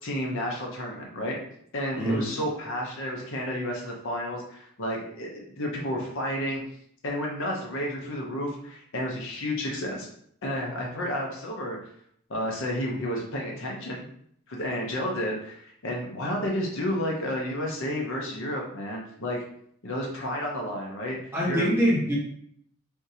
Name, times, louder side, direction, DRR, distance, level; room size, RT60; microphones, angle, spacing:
voice 1, 0.0-1.4 1.7-6.6 7.0-10.1 10.4-11.8 12.3-14.0 14.5-19.4 19.8-21.2 21.4-21.8, equal, 65° left, -1 dB, 0.7 m, -31 dB
voice 2, 21.3-22.2, equal, 10° right, -6 dB, 1.1 m, -24 dB
3.5 x 2.7 x 2.7 m, 0.67 s
head